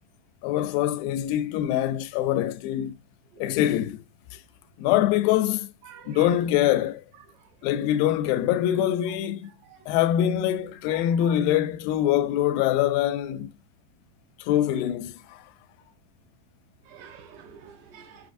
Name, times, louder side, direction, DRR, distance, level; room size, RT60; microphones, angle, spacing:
voice 1, 0.4-2.9 3.4-4.0 4.8-5.7 6.1-7.0 7.6-9.5 9.9-13.5 14.4-15.4, left 12 dB, 85° left, 2.3 m, -24 dB
voice 2, 5.8-6.4 7.3-7.5 9.6-9.9 10.9-11.3 16.8-18.3, right 7 dB, 80° right, 1.9 m, -48 dB
5.6 x 3.3 x 2.6 m
omnidirectional pair, 4.0 m